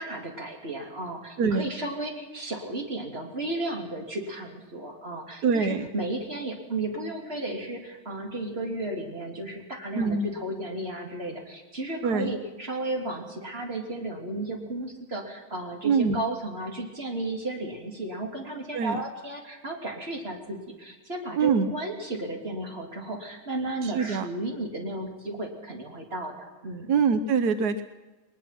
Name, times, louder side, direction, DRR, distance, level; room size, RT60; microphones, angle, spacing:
voice 1, 0.0-26.9, right 2 dB, 40° right, 1 dB, 3.5 m, -34 dB
voice 2, 5.4-5.9 9.9-10.3 12.0-12.3 15.8-16.2 18.7-19.0 21.4-21.7 23.8-24.3 26.9-27.8, right 5 dB, 85° right, 10 dB, 1.4 m, -24 dB
21.5 x 20.5 x 6.0 m, 1.2 s
omnidirectional pair, 1.6 m